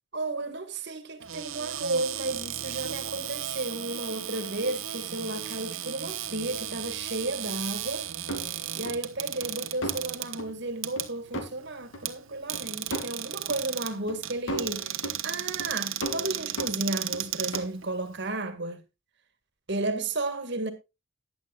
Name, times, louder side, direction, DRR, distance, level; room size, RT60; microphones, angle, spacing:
voice 1, 0.1-8.1 8.5-18.8 19.7-20.7, right 2 dB, 60° right, 1.9 m, -33 dB
Cupboard open or close, 1.2-18.3, right 11 dB, 80° right, 1.2 m, -35 dB
sound 1, 8.3-9.0 9.4-9.5 9.8-10.1 10.4-10.5 11.0-11.1 11.3-11.5 11.9-12.0 12.5-12.6 12.9-13.1 13.5-13.6 14.1-14.2 14.5-15.2 15.6-15.7 16.0-17.2 17.5-17.7, right 1 dB, 80° left, 2.7 m, -35 dB
15.0 x 10.5 x 2.4 m
head